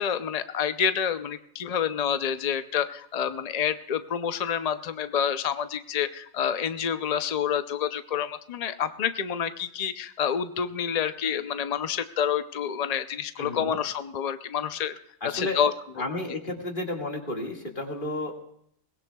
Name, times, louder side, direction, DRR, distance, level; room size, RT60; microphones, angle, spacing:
voice 1, 0.0-14.9 15.3-15.7, left 8 dB, 65° left, 10 dB, 0.4 m, -28 dB
voice 2, 13.4-13.8 15.2-15.6 16.0-18.3, left 2 dB, 35° left, 1 dB, 2.1 m, -32 dB
22.0 x 19.5 x 2.3 m, 0.71 s
omnidirectional pair, 1.4 m